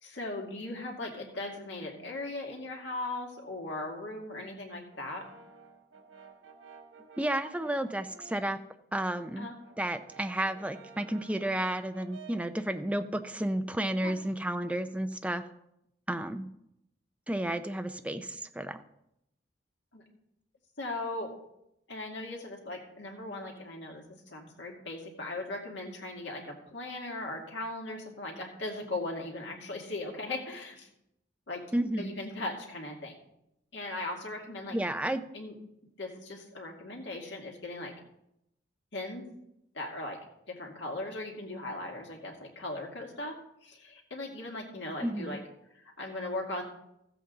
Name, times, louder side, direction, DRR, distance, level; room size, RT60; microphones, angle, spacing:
voice 1, 0.0-5.3 9.4-9.6 14.0-14.1 19.9-20.0 20.8-21.3 21.9-30.9 31.5-31.6 32.0-33.2 33.7-34.8 35.3-35.5 36.0-37.9 38.9-39.3 39.7-40.2 40.5-45.4 45.7-46.6, left 2 dB, 70° left, 0 dB, 2.3 m, -38 dB
Brass instrument, 4.9-8.6 8.9-12.6, right 5 dB, 90° right, 1.0 m, -53 dB
voice 2, 7.2-8.6 8.9-9.5 9.8-15.4 16.1-16.5 17.3-18.8 31.7-32.1 34.7-35.2 45.0-45.4, right 1 dB, 5° right, 8 dB, 0.5 m, -32 dB
14.5 x 7.8 x 3.9 m, 0.81 s
head